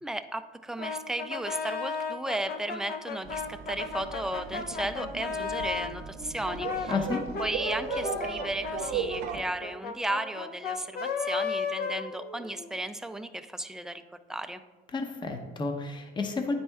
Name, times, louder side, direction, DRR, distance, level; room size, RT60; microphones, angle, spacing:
voice 1, 0.0-6.9 7.4-14.0 14.3-14.6, right 1 dB, 5° right, 9 dB, 0.3 m, -34 dB
Brass instrument, 0.8-6.0 6.4-12.7, left 5 dB, 65° left, 0.8 m, -35 dB
sound 1, 3.3-9.4, right 6 dB, 85° right, 0.6 m, -37 dB
voice 2, 6.9-7.2 14.9-16.5, left 3 dB, 25° left, 4 dB, 0.8 m, -31 dB
9.2 x 4.2 x 3.5 m, 1.4 s
cardioid pair, 110°, 17 cm